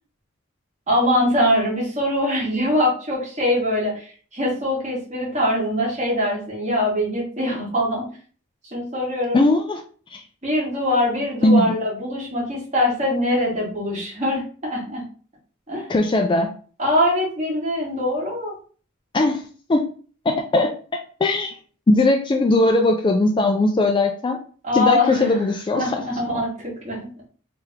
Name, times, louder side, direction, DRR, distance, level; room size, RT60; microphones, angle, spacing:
voice 1, 0.9-8.1 8.7-9.5 10.4-15.0 15.7-15.9 16.8-18.5 24.6-27.1, left 1 dB, 30° right, -4 dB, 1.6 m, -23 dB
voice 2, 9.3-9.8 10.1-10.2 11.4-11.7 15.9-16.5 19.1-19.4 19.7-19.8 20.3-20.7 21.2-21.6 21.9-24.4 24.7-26.0, left 2 dB, 20° left, 4 dB, 0.3 m, -19 dB
3.3 x 2.9 x 3.6 m, 0.42 s
head